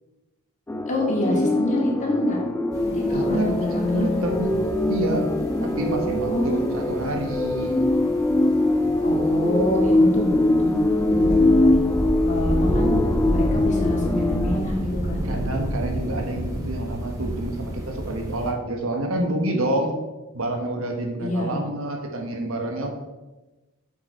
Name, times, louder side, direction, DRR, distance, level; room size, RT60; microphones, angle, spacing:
sound 1, 0.7-14.6, left 2 dB, 10° left, 0.3 m, -22 dB
voice 1, 0.9-2.4 2.9-4.2 6.2-6.6 9.0-10.7 11.1-11.8 12.2-12.9 13.3-15.2 21.2-21.6, left 1 dB, 35° left, -3 dB, 2.1 m, -27 dB
sound 2, 2.7-18.5, right 1 dB, 15° right, 1.5 m, -31 dB
voice 2, 3.1-4.6 4.9-5.3 5.6-7.9 15.2-19.9 20.3-22.9, right 1 dB, 65° right, 3 dB, 1.4 m, -28 dB
7.8 x 5.9 x 4.5 m, 1.1 s
head